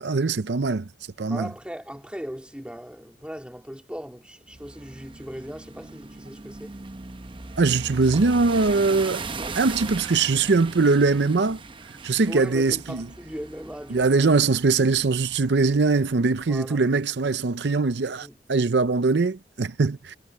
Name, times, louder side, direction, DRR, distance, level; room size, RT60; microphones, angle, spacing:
voice 1, 0.0-0.9 1.2-1.5 7.6-9.2 9.6-11.6 12.0-13.1 13.9-20.2, right 4 dB, 75° right, 0.6 m, -22 dB
voice 2, 1.3-6.8 9.8-9.9 12.3-14.4 16.5-16.8 18.2-18.4, equal, 5° right, 3.0 m, -38 dB
sound 1, 4.5-16.6, right 3 dB, 30° right, 0.8 m, -39 dB
head